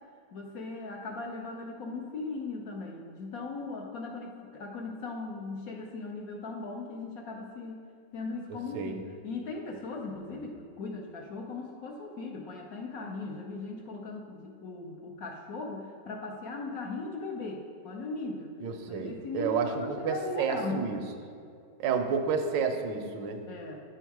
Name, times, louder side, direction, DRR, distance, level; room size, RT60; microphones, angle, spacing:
voice 1, 0.3-7.8 8.1-18.5 18.9-21.0 23.5-23.8, left 3 dB, 65° left, 1 dB, 0.9 m, -38 dB
voice 2, 18.6-21.0 21.8-23.4, right 5 dB, 85° right, 6 dB, 1.3 m, -30 dB
9.2 x 3.6 x 4.5 m, 2.4 s
omnidirectional pair, 1.9 m